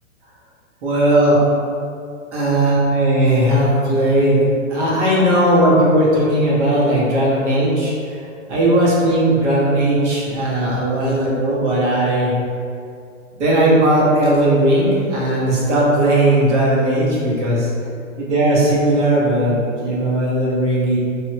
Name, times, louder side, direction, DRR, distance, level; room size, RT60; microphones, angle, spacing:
voice 1, 0.8-1.4 2.3-4.4 4.7-8.2 8.5-12.3 13.4-17.7 18.2-21.0, right 1 dB, 60° right, -5 dB, 1.3 m, -17 dB
3.2 x 2.6 x 3.1 m, 2.4 s
hypercardioid pair, 135°, 39 cm